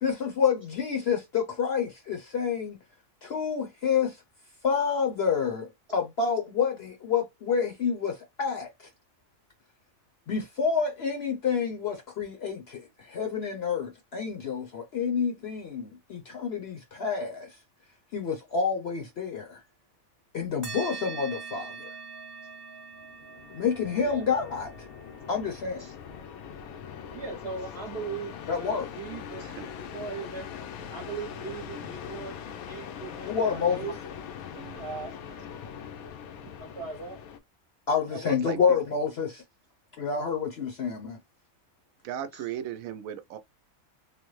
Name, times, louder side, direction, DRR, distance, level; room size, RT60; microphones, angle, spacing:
voice 1, 0.0-2.8 3.2-4.2 4.6-8.7 10.3-17.6 18.1-19.6 20.3-21.9 23.5-24.9 25.3-25.9 28.5-28.9 33.2-33.9 37.9-39.4 40.0-41.2, left 6 dB, 60° left, 0.8 m, -28 dB
sound 1, 20.6-29.5, right 5 dB, 20° right, 0.8 m, -45 dB
sound 2, 23.0-37.4, left 8 dB, 90° left, 1.1 m, -42 dB
voice 2, 27.1-30.5 30.9-32.3 32.7-34.1 34.8-35.1 36.6-37.2 38.1-38.7 42.3-42.4, right 5 dB, 50° right, 0.9 m, -39 dB
voice 3, 34.5-34.9 38.4-38.8 42.0-43.4, right 10 dB, 75° right, 1.0 m, -37 dB
3.3 x 2.1 x 3.1 m
omnidirectional pair, 1.5 m